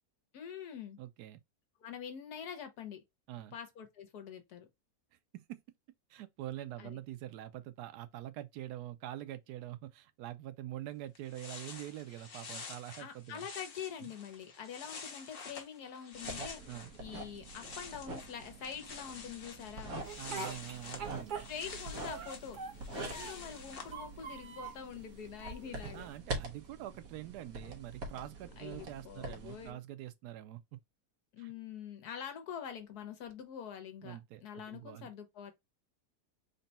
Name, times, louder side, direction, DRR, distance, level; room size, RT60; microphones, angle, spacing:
voice 1, 0.3-1.0 1.8-3.0 3.5-4.7 6.8-7.0 13.0-16.6 17.0-20.0 21.5-22.6 22.8-26.1 28.6-29.8 31.3-35.5, left 8 dB, 80° left, 1.4 m, -45 dB
voice 2, 1.0-1.4 3.3-3.5 5.3-5.6 6.1-13.5 14.0-14.1 16.7-16.9 20.2-21.5 25.9-30.8 31.4-31.5 34.0-35.1, right 13 dB, 90° right, 1.1 m, -45 dB
sound 1, 10.9-11.0 11.1-17.0 17.3-23.9, left 4 dB, 45° left, 0.8 m, -49 dB
sound 2, 16.1-29.7, right 2 dB, 70° right, 1.4 m, -45 dB
Speech, 20.0-21.8 22.1-23.5 23.8-24.8 25.4-26.2, right 5 dB, 45° right, 0.7 m, -44 dB
4.0 x 2.2 x 3.9 m
omnidirectional pair, 1.6 m